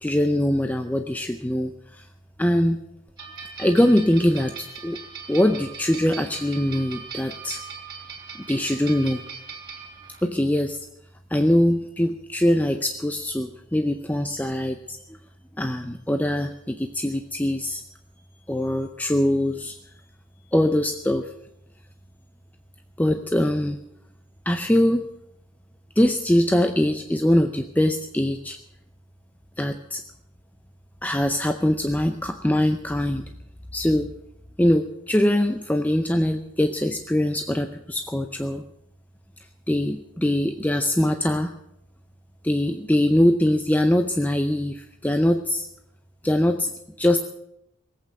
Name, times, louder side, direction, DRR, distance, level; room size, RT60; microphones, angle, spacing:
voice 1, 0.0-2.0 2.4-2.8 3.6-5.0 5.3-7.6 8.5-9.2 10.2-10.8 11.3-14.8 15.1-15.2 15.6-17.8 18.5-19.8 20.5-21.3 23.0-23.8 24.5-25.1 26.0-28.6 29.6-30.0 31.0-33.2 33.7-34.1 34.6-38.6 39.7-41.5 42.4-45.7 46.2-46.7 47.0-47.2, left 1 dB, 10° left, 6 dB, 0.6 m, -22 dB
sound 1, 3.2-10.3, right 6 dB, 25° right, 3.4 m, -40 dB
19.0 x 8.4 x 7.7 m, 0.79 s
head